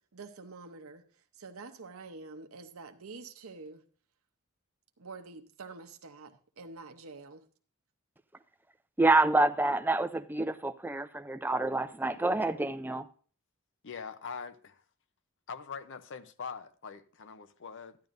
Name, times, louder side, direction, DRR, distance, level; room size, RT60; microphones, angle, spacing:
voice 1, 0.1-1.0 1.3-3.8 5.0-7.4, right 3 dB, 70° right, 0.8 m, -47 dB
voice 2, 9.0-13.1, right 2 dB, 10° right, 0.4 m, -27 dB
voice 3, 13.8-14.8 15.5-18.0, left 6 dB, 60° left, 0.7 m, -43 dB
12.5 x 10.5 x 2.6 m
head